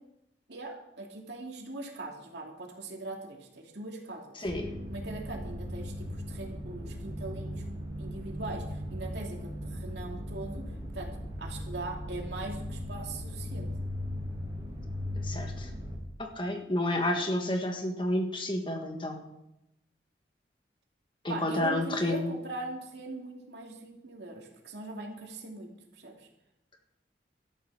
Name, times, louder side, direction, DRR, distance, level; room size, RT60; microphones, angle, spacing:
voice 1, 0.5-4.5 4.9-7.6 8.0-10.7 10.9-11.1 11.4-13.7 21.3-25.7 26.0-26.3, right 2 dB, 70° right, 1 dB, 2.8 m, -41 dB
voice 2, 4.4-4.7 15.2-15.7 16.2-19.2 21.2-22.3, left 1 dB, 30° left, 4 dB, 1.5 m, -30 dB
sound 1, 4.5-16.0, equal, 25° right, 3.5 m, -38 dB
12.5 x 10.5 x 6.4 m, 0.87 s
head